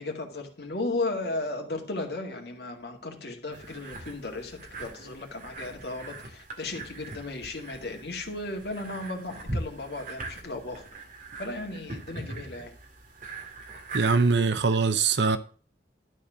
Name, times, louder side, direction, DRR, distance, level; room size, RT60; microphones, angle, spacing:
voice 1, 0.0-10.9 11.4-12.7, left 2 dB, 70° left, 2.1 m, -35 dB
sound 1, 3.5-14.8, right 2 dB, 50° right, 2.0 m, -41 dB
voice 2, 13.9-15.4, right 4 dB, 85° right, 0.7 m, -22 dB
12.0 x 4.4 x 6.3 m
head